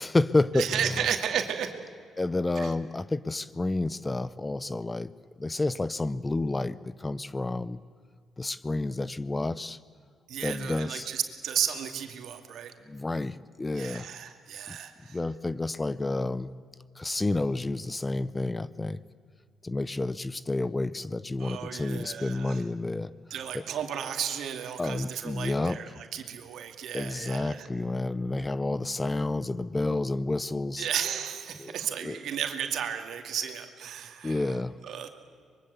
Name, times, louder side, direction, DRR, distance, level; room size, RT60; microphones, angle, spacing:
voice 1, 0.0-0.9 2.2-5.1 5.4-7.8 8.4-9.8 10.4-11.1 12.9-14.1 14.7-14.8 15.1-16.5 17.0-19.0 19.6-23.1 23.5-23.6 24.8-25.8 26.9-30.9 31.6-32.2 34.2-34.8, left 2 dB, 20° left, 17 dB, 0.7 m, -30 dB
voice 2, 0.5-1.7 2.6-2.7 10.3-12.7 13.7-15.2 21.4-22.6 23.3-27.7 30.8-34.4 34.8-35.1, right 9 dB, 75° right, 6 dB, 2.4 m, -33 dB
24.5 x 22.5 x 8.3 m, 2.1 s
cardioid pair, 90°, 0 cm